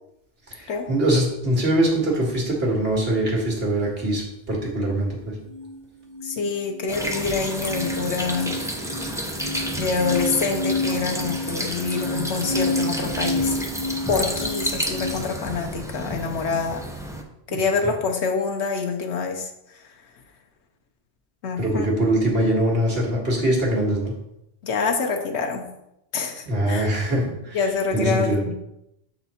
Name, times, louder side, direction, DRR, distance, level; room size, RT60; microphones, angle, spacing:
voice 1, 0.5-5.4 21.6-24.1 26.5-27.6 27.9-28.4, right 1 dB, 65° right, -2 dB, 1.9 m, -23 dB
Tibetan bowl rubbing rim, 5.5-15.1, left 2 dB, 40° right, 1.4 m, -30 dB
voice 2, 6.2-8.5 9.8-13.6 14.1-16.8 17.5-19.9 21.4-21.9 24.6-25.7 26.1-26.9 27.5-28.5, left 4 dB, 80° left, 3 dB, 1.1 m, -26 dB
sound 1, 6.9-17.2, equal, 5° right, 0.5 m, -30 dB
7.0 x 4.2 x 4.2 m, 0.85 s
omnidirectional pair, 1.1 m